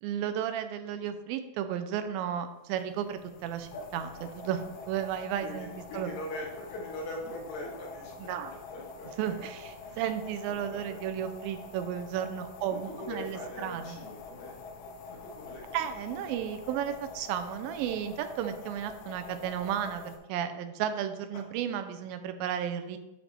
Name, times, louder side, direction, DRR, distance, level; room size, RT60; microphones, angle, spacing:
voice 1, 0.0-4.1 4.4-5.7 5.9-6.1 8.2-8.5 9.2-14.0 15.7-23.0, right 9 dB, 90° right, 8 dB, 2.4 m, -33 dB
sound 1, 2.7-20.2, left 4 dB, 85° left, 2.5 m, -46 dB
voice 2, 5.4-8.3 8.7-9.4 9.8-10.0 10.5-11.0 12.7-14.7 15.1-15.8 21.3-21.4, left 1 dB, 65° left, -1 dB, 2.2 m, -42 dB
9.7 x 3.4 x 4.3 m, 0.96 s
omnidirectional pair, 4.1 m